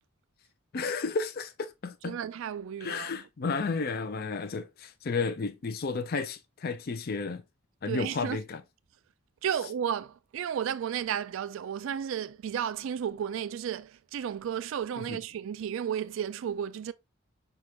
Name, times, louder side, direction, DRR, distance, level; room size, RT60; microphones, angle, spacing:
voice 1, 0.7-2.2 2.8-7.4 7.8-8.6 15.0-15.2, left 4 dB, 45° left, 0.5 m, -32 dB
voice 2, 2.0-3.2 7.8-8.4 9.4-16.9, right 8 dB, 65° right, 0.3 m, -33 dB
5.9 x 2.4 x 3.1 m
head